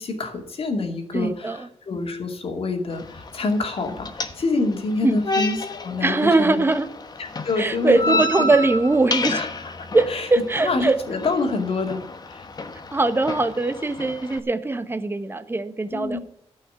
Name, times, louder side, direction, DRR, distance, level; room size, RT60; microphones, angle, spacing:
voice 1, 0.0-6.6 7.2-8.5 9.3-9.7 10.1-10.3 10.6-12.0 12.3-12.5 15.9-16.2, left 3 dB, 60° left, 3 dB, 2.4 m, -26 dB
voice 2, 1.1-1.7 5.0-5.2 6.0-6.9 7.6-9.4 9.9-11.0 12.9-16.2, right 2 dB, 20° right, 10 dB, 1.0 m, -21 dB
Gate closing walk away, 2.9-14.4, left 2 dB, 40° left, 1.0 m, -31 dB
13.0 x 5.7 x 8.0 m, 0.74 s
wide cardioid pair, 120°, 11 cm